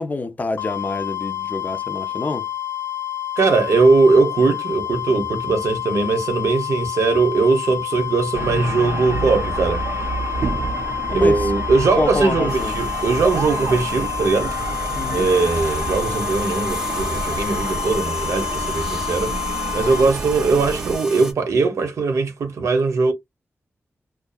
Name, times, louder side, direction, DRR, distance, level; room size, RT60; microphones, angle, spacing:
voice 1, 0.0-2.5 11.1-11.5 12.0-12.7 15.0-15.3, left 3 dB, 35° left, 0.4 m, -26 dB
sound 1, 0.6-20.1, left 12 dB, 75° left, 0.7 m, -29 dB
voice 2, 3.4-9.8 11.1-14.5 15.1-19.4 19.7-23.1, right 4 dB, 90° right, 0.7 m, -20 dB
sound 2, 8.3-21.0, right 4 dB, 55° right, 0.3 m, -29 dB
sound 3, 12.5-21.3, right 2 dB, 10° right, 0.6 m, -34 dB
2.6 x 2.3 x 2.3 m
wide cardioid pair, 145°, 5 cm